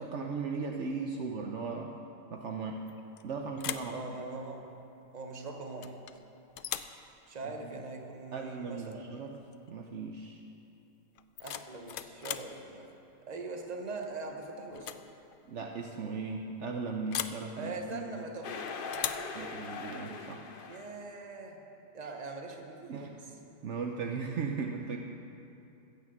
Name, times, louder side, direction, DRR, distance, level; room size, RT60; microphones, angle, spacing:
voice 1, 0.0-1.9 2.3-2.8 3.2-4.0 7.4-7.8 8.3-9.3 9.7-10.4 15.5-18.2 19.3-20.5 22.9-23.4 23.6-25.0, right 4 dB, 65° right, 2 dB, 1.0 m, -37 dB
sound 1, 2.9-3.2 3.6-4.0 5.8-6.2 6.6-7.0 8.8-9.0 9.3-9.7 11.1-12.6 14.0-14.3 14.7-15.1 15.3-15.4 17.1-17.5 18.9-19.3, left 9 dB, 70° left, 0.5 m, -38 dB
voice 2, 3.9-4.7 5.1-6.0 7.3-9.3 11.4-12.9 13.3-15.0 17.6-19.6 20.7-21.6 21.9-23.2, right 3 dB, 30° right, 3 dB, 1.1 m, -42 dB
sound 2, 18.4-21.0, left 4 dB, 50° left, 0.8 m, -41 dB
15.5 x 6.7 x 7.7 m, 2.7 s
omnidirectional pair, 1.4 m